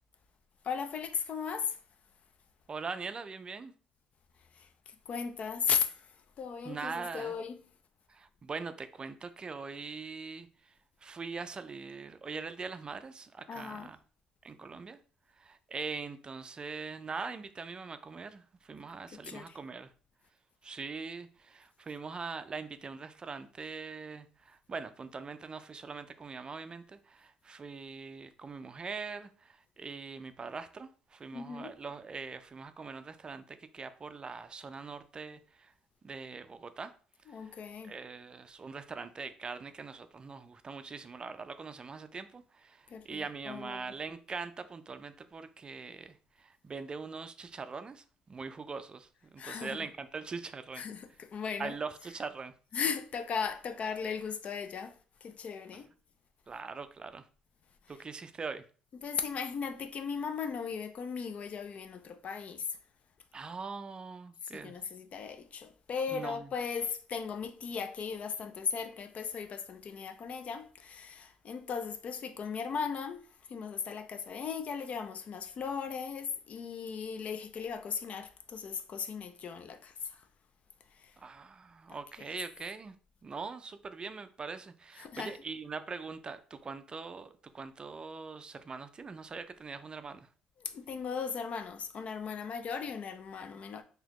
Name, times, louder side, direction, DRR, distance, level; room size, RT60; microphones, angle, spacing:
voice 1, 0.6-1.8 4.6-4.7 5.1-6.0 6.4-7.6 13.5-13.9 19.2-19.6 31.3-31.7 37.3-37.9 42.9-43.9 49.4-49.8 50.8-51.7 52.7-54.9 55.2-55.9 59.0-62.7 64.5-73.2 73.5-80.2 81.0-81.1 85.0-85.3 90.6-93.8, left 6 dB, 55° left, 0.4 m, -37 dB
voice 2, 2.7-3.7 6.6-7.3 8.1-10.7 11.0-14.0 14.4-15.0 15.4-19.9 20.6-35.7 36.0-36.9 37.3-37.6 37.8-50.8 51.6-52.5 55.7-55.8 56.5-57.2 57.9-58.6 63.3-64.8 66.1-66.5 81.2-83.0 83.2-90.3, right 4 dB, 35° right, 0.4 m, -42 dB
4.0 x 2.8 x 2.9 m
cardioid pair, 80°, 3 cm